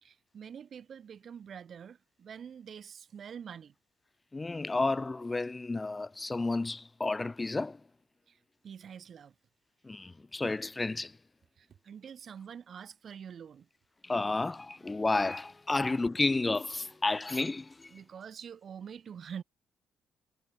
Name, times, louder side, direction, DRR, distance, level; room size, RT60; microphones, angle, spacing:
voice 1, 0.0-3.7 8.3-8.4 8.6-9.3 11.6-13.7 17.9-19.4, right 7 dB, 55° right, 0.4 m, -46 dB
voice 2, 4.3-7.8 9.8-11.2 14.0-17.9, left 3 dB, 20° left, 0.4 m, -31 dB
cardioid pair, 90°, 0 cm